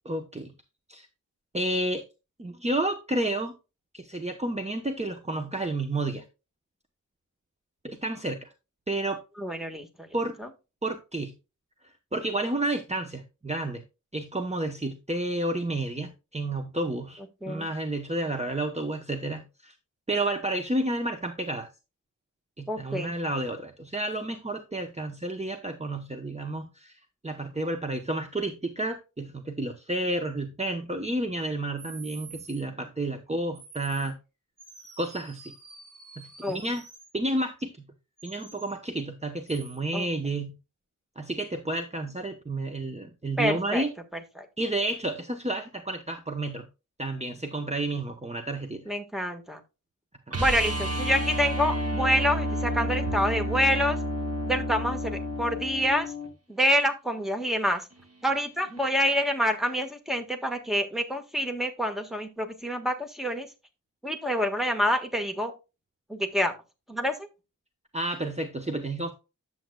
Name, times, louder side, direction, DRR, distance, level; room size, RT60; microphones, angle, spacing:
voice 1, 0.0-0.5 0.9-1.1 1.5-2.0 2.4-3.5 3.9-6.2 7.8-8.5 8.9-9.2 10.1-10.3 10.8-11.3 12.1-13.8 14.1-19.7 20.1-21.7 22.6-34.2 35.0-35.5 36.2-36.8 37.1-37.9 38.2-40.6 41.2-43.9 44.6-46.7 47.0-48.9 50.3-50.4 67.9-69.1, right 1 dB, 20° right, 0.9 m, -31 dB
voice 2, 9.4-10.1 10.4-10.5 17.4-17.7 22.7-23.1 36.4-36.6 39.9-40.0 43.4-43.8 44.4-44.5 48.9-49.6 50.4-54.0 54.5-56.1 56.5-57.8 58.2-63.5 64.0-65.5 66.1-66.5 66.9-67.3, equal, ahead, 1.5 m, -27 dB
sound 1, 31.8-32.6 33.5-34.1 34.6-37.1 38.2-38.7 39.5-39.8, right 5 dB, 65° right, 3.9 m, -48 dB
sound 2, 50.3-56.3 58.8-58.9, equal, 50° right, 1.9 m, -30 dB
10.0 x 7.6 x 2.3 m
wide cardioid pair, 80°, 32 cm